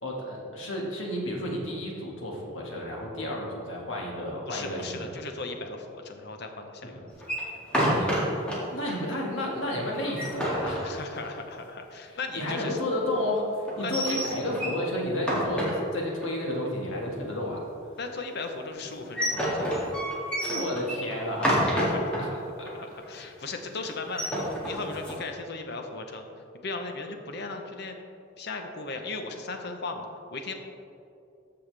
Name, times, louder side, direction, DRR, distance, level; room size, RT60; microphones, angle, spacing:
voice 1, 0.0-5.1 6.8-7.1 7.9-10.8 12.1-17.6 20.4-21.8 22.2-22.3 22.6-22.7, left 1 dB, 75° left, -2 dB, 1.8 m, -32 dB
voice 2, 4.5-7.1 10.8-12.8 13.8-14.2 18.0-19.9 21.4-22.4 22.7-26.2 26.6-28.0 28.4-30.5, left 3 dB, 60° left, 5 dB, 0.9 m, -37 dB
sound 1, 7.2-8.6 8.9-9.0 9.3-9.4 9.9-11.5 13.7-14.8 15.2-16.2 18.8-22.2 22.7-22.8 23.0-23.4 24.0-25.2, equal, 5° left, 2.0 m, -28 dB
14.0 x 5.6 x 3.4 m, 2.7 s
head